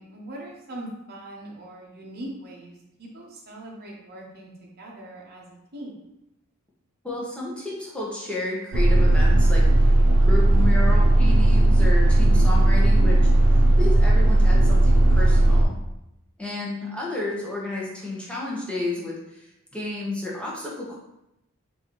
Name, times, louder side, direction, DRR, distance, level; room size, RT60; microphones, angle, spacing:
voice 1, 0.0-6.0 10.6-10.9 12.9-13.2, right 1 dB, 45° right, -2 dB, 0.9 m, -40 dB
voice 2, 7.0-9.9 10.2-13.2 13.8-15.8 16.4-19.5 19.7-21.0, left 2 dB, 5° left, -4 dB, 0.8 m, -31 dB
sound 1, 8.7-15.6, right 1 dB, 65° right, 0.5 m, -16 dB
4.7 x 2.7 x 3.0 m, 0.86 s
head